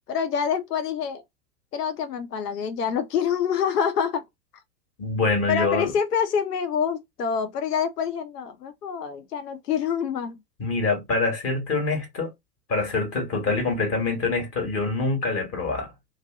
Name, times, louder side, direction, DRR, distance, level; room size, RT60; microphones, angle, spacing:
voice 1, 0.1-1.2 1.7-4.2 5.5-10.4, left 7 dB, 70° left, 0.7 m, -26 dB
voice 2, 5.0-5.9 10.6-12.3 12.7-15.9, left 3 dB, 30° left, 1.4 m, -25 dB
2.6 x 2.5 x 3.0 m
figure-of-eight pair, 95°, 49 cm